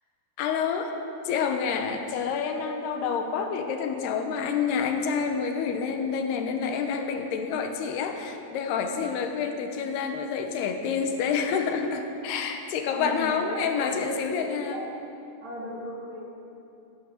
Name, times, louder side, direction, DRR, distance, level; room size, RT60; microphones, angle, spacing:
voice 1, 0.4-0.9 1.2-14.8, left 6 dB, 85° left, 5 dB, 3.1 m, -28 dB
voice 2, 12.9-14.8 15.4-16.2, right 1 dB, 50° right, -3 dB, 3.1 m, -37 dB
15.5 x 11.5 x 6.7 m, 2.8 s
omnidirectional pair, 4.6 m